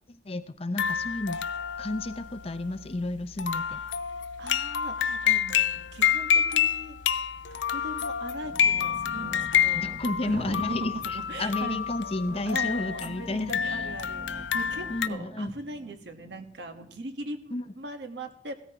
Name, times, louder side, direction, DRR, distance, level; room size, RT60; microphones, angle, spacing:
voice 1, 0.1-1.4 1.8-3.8 9.8-13.9 14.9-15.5 17.5-17.6, left 2 dB, 30° left, 11 dB, 0.7 m, -32 dB
sound 1, 0.8-15.1, left 8 dB, 85° left, 0.6 m, -28 dB
voice 2, 4.4-7.0 7.5-11.8 12.3-18.5, right 2 dB, 70° right, 6 dB, 1.4 m, -40 dB
sound 2, 8.4-17.4, right 1 dB, 20° right, 0.5 m, -47 dB
16.5 x 13.5 x 3.0 m, 0.72 s
head